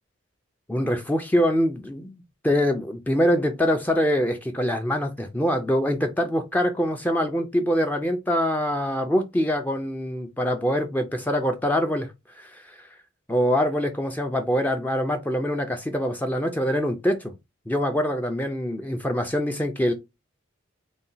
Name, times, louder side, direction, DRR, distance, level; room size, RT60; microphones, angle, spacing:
voice 1, 0.7-2.2 2.4-12.1 12.4-12.8 13.3-17.3 17.7-19.9, equal, 10° left, 0.3 m, -24 dB
4.0 x 2.2 x 3.9 m
head